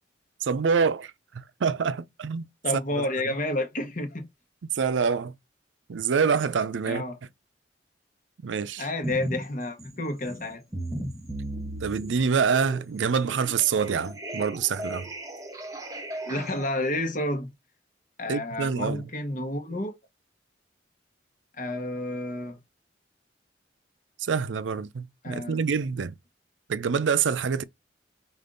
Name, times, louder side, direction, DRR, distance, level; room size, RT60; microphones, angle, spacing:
voice 1, 0.4-2.5 3.0-3.1 4.7-5.3 5.9-7.0 8.4-8.9 11.8-15.1 18.3-19.1 24.2-26.2 26.7-27.6, right 6 dB, 80° right, 0.5 m, -26 dB
voice 2, 2.6-4.3 6.9-7.2 8.8-10.6 16.3-17.5 18.2-19.9 21.6-22.6 25.2-25.6, left 1 dB, 45° left, 1.0 m, -30 dB
sound 1, 9.0-9.5 9.8-16.7, right 1 dB, 20° right, 0.8 m, -36 dB
5.1 x 2.5 x 3.8 m
head